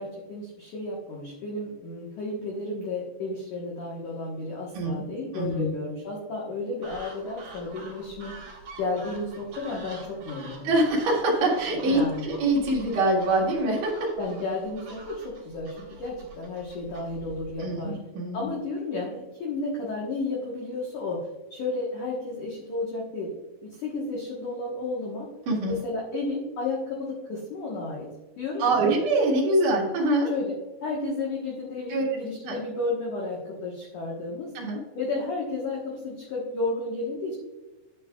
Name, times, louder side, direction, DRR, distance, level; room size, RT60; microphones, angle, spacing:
voice 1, 0.0-8.4 8.8-10.7 11.9-12.3 14.1-18.0 18.3-23.3 23.6-25.3 25.7-28.1 28.4-28.9 30.3-34.5 34.9-37.4, left 2 dB, 75° left, -3 dB, 1.8 m, -32 dB
voice 2, 5.3-5.7 10.6-13.9 17.6-18.5 25.5-25.7 28.6-30.3 31.9-32.0 32.5-32.6 34.5-34.8, right 2 dB, 60° right, -2 dB, 2.4 m, -24 dB
sound 1, 6.8-17.5, right 3 dB, 45° right, 3.4 m, -46 dB
10.0 x 9.1 x 2.4 m, 1.1 s
omnidirectional pair, 5.8 m